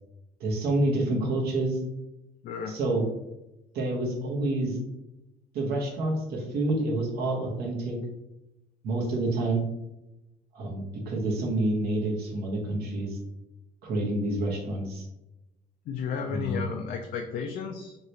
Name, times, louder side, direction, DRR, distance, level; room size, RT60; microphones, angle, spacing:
voice 1, 0.4-1.8 2.7-3.1 3.7-4.8 5.5-8.0 8.8-9.7 10.5-13.2 13.8-15.1 16.3-16.7, right 2 dB, 70° right, -1 dB, 1.0 m, -28 dB
voice 2, 2.4-2.8 15.9-18.0, left 6 dB, 60° left, 3 dB, 0.4 m, -33 dB
3.2 x 2.9 x 2.7 m, 0.94 s
cardioid pair, 110°, 17 cm